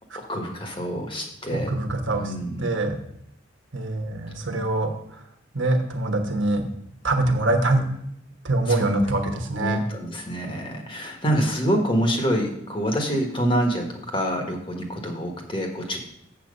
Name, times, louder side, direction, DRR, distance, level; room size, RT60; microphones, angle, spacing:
voice 1, 0.3-1.7 2.2-2.7 8.7-8.9 9.6-16.0, equal, 25° left, 2 dB, 1.5 m, -26 dB
voice 2, 1.5-2.3 2.6-3.0 3.7-4.9 5.5-6.7 7.0-7.8 8.4-9.8, right 2 dB, 75° right, 4 dB, 1.3 m, -24 dB
7.5 x 7.4 x 5.3 m, 0.75 s
head